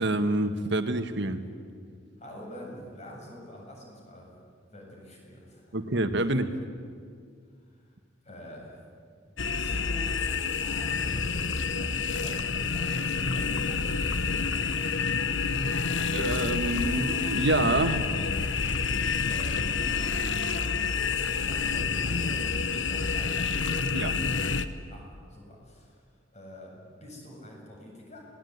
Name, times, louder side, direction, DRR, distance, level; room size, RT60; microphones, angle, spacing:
voice 1, 0.0-1.5 5.7-6.6 16.1-18.1 23.9-24.2, right 2 dB, 65° right, 8 dB, 1.6 m, -27 dB
voice 2, 2.2-4.3 4.7-5.9 7.7-7.9 8.2-8.8 9.3-10.3 10.6-13.8 19.2-23.6 24.9-26.0 26.3-28.2, left 1 dB, 35° left, -1 dB, 7.7 m, -46 dB
sound 1, 9.4-24.6, left 5 dB, 70° left, 1.1 m, -28 dB
28.5 x 19.0 x 9.6 m, 2.2 s
head